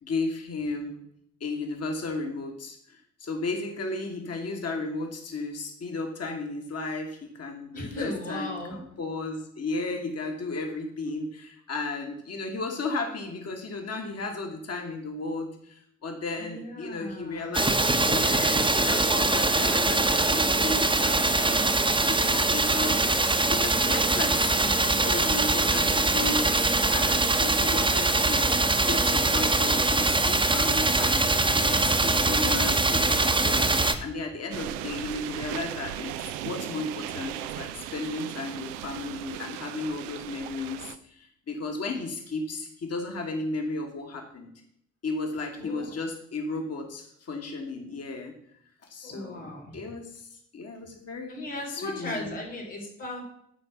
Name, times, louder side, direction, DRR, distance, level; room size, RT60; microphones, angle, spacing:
voice 1, 0.0-1.0 1.4-21.7 22.1-28.5 28.9-44.5 45.0-48.3 48.8-51.4 51.7-52.4, left 3 dB, 40° left, 3 dB, 1.6 m, -34 dB
voice 2, 7.7-8.8 16.3-17.5 45.6-45.9 49.0-49.8 51.3-53.2, left 1 dB, 90° left, -6 dB, 2.6 m, -37 dB
sound 1, 17.5-34.0, right 2 dB, 15° right, 1.0 m, -23 dB
sound 2, 34.5-41.0, right 12 dB, 75° right, 0.6 m, -37 dB
11.0 x 4.5 x 5.8 m, 0.72 s
hypercardioid pair, 40°, 37 cm